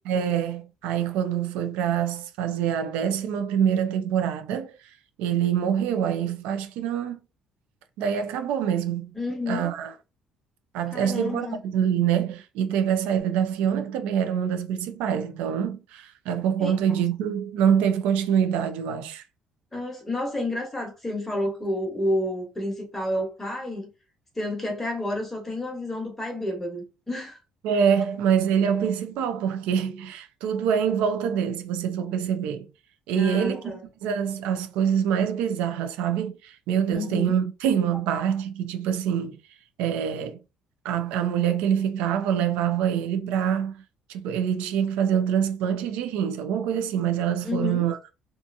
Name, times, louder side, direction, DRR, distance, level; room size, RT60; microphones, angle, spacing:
voice 1, 0.1-7.2 8.0-9.1 9.5-9.9 10.7-19.2 27.6-32.7 33.1-39.4 39.8-40.4 40.8-43.8 44.1-48.0, right 8 dB, 90° right, 0.4 m, -25 dB
voice 2, 9.1-9.7 10.9-11.6 16.6-16.8 19.7-23.9 24.4-27.4 33.1-33.8 36.9-37.4 47.4-47.9, left 1 dB, 10° left, 1.0 m, -30 dB
2.7 x 2.4 x 2.6 m
cardioid pair, 155°, 2 cm